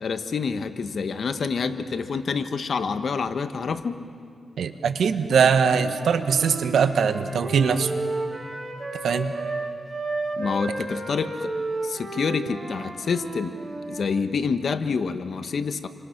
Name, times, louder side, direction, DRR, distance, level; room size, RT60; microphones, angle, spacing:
voice 1, 0.0-4.0 10.4-11.5 11.8-13.6 13.9-15.9, left 5 dB, 65° left, 9 dB, 1.2 m, -27 dB
voice 2, 4.6-7.9 9.0-9.3, right 6 dB, 85° right, 9 dB, 1.2 m, -21 dB
Wind instrument woodwind instrument, 5.6-14.0, right 2 dB, 30° right, 7.1 m, -32 dB
29.5 x 25.5 x 6.0 m, 2.3 s
cardioid pair, 70°, 0 cm